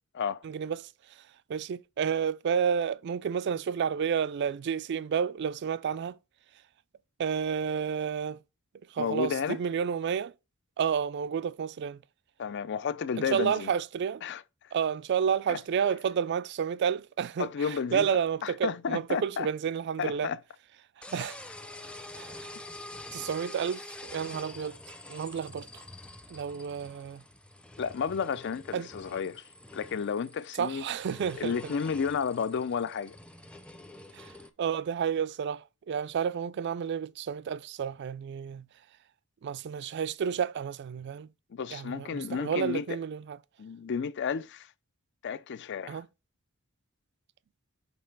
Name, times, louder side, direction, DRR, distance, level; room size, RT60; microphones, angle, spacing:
voice 1, 0.4-0.9 1.5-6.2 7.2-8.4 8.9-10.3 10.8-12.0 13.3-14.2 14.7-20.3 21.1-21.4 22.1-22.5 23.1-24.8 25.1-25.7 26.3-27.2 28.7-28.9 30.6-31.5 34.1-34.3 34.6-38.6 39.4-41.3 41.7-43.4 45.9-46.1, right 7 dB, 55° right, 0.3 m, -30 dB
voice 2, 9.0-9.6 12.4-13.7 14.2-14.4 15.5-15.6 17.4-18.1 18.4-19.5 20.0-20.4 27.8-29.4 29.7-30.8 31.4-33.2 41.5-42.8 43.6-44.7 45.2-46.0, left 6 dB, 60° left, 0.4 m, -32 dB
sound 1, 21.0-34.5, left 2 dB, 5° left, 0.6 m, -47 dB
5.3 x 3.9 x 5.8 m
head